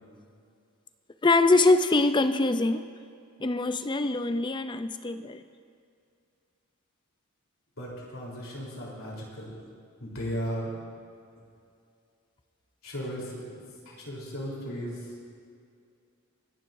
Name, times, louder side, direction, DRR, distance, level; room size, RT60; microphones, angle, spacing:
voice 1, 1.2-2.9 3.4-5.4, left 2 dB, 20° left, 10 dB, 0.5 m, -23 dB
voice 2, 7.8-9.5 10.0-10.7 12.8-13.4 13.9-15.0, equal, 65° left, -3 dB, 3.7 m, -36 dB
29.0 x 11.5 x 2.6 m, 2.4 s
head